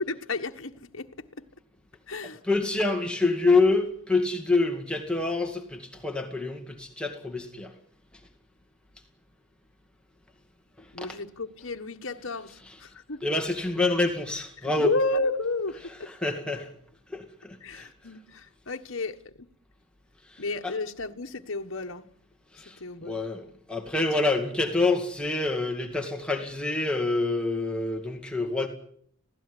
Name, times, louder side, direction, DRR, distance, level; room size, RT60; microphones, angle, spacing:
voice 1, 0.0-1.5 2.1-2.7 10.9-13.2 14.6-16.1 17.6-19.5 20.4-22.1 22.8-23.2, left 2 dB, 65° left, 1.4 m, -32 dB
voice 2, 2.5-7.7 11.0-11.1 13.2-14.9 16.2-16.7 17.1-17.2 17.7-17.9 20.6-20.7 22.6-22.7 23.0-23.4 23.7-28.7, left 3 dB, 5° left, 2.2 m, -26 dB
25.5 x 17.0 x 10.0 m
head